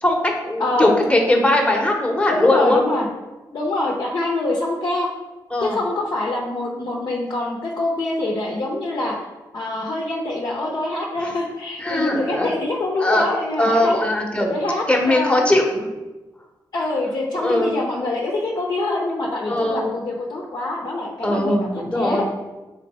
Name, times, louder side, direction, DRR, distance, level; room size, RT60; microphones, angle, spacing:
voice 1, 0.0-2.8 5.5-5.8 11.8-12.6 13.0-13.3 13.6-14.5 14.9-15.9 17.3-17.7 19.5-19.9 21.2-22.2, left 1 dB, 15° left, 1 dB, 1.0 m, -20 dB
voice 2, 0.6-0.9 1.6-1.7 2.3-3.1 3.5-5.1 5.6-9.2 9.5-14.0 14.5-15.5 16.7-22.3, left 2 dB, 55° left, -2 dB, 0.7 m, -25 dB
4.0 x 3.2 x 4.1 m, 1.1 s
cardioid pair, 60°, 8 cm